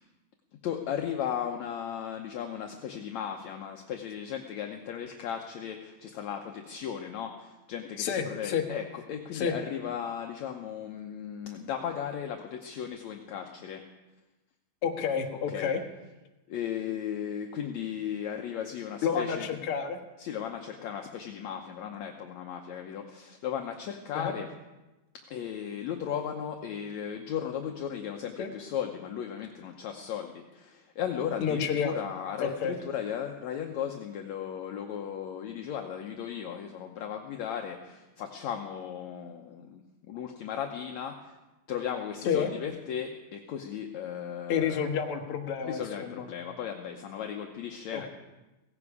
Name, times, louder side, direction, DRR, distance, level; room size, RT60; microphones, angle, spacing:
voice 1, 0.6-13.8 15.3-15.8 16.5-19.6 20.2-24.5 25.3-39.8 40.1-41.4 41.7-44.9 45.6-48.1, left 8 dB, 75° left, 3 dB, 1.7 m, -36 dB
voice 2, 8.0-8.6 9.3-9.5 14.8-15.8 19.0-20.0 24.1-24.3 28.4-28.5 31.4-31.9 32.4-32.7 42.2-42.5 44.5-46.2 47.9-48.1, left 7 dB, 55° left, 3 dB, 1.7 m, -29 dB
17.0 x 16.5 x 4.9 m, 1.1 s
omnidirectional pair, 4.2 m